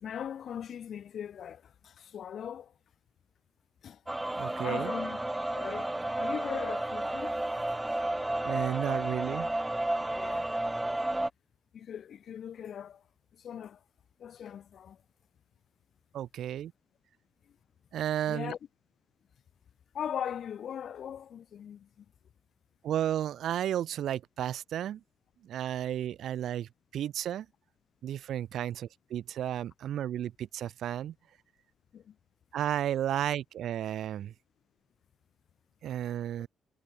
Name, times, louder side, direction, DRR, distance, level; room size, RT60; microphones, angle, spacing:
voice 1, 0.0-2.7 3.8-4.0 4.6-5.2 5.5-7.4 10.1-10.5 11.7-13.0 13.4-13.8 14.2-15.0 18.3-18.6 19.9-21.9 31.9-32.1, left 9 dB, 60° left, 0.9 m, -39 dB
sound 1, 4.1-11.3, right 1 dB, 10° right, 0.5 m, -32 dB
voice 2, 4.4-4.9 8.4-9.6 16.1-16.7 17.9-18.5 22.8-25.0 25.4-27.5 28.0-31.1 32.5-34.3 35.8-36.5, right 11 dB, 70° right, 0.4 m, -33 dB
cardioid pair, 90°, 0 cm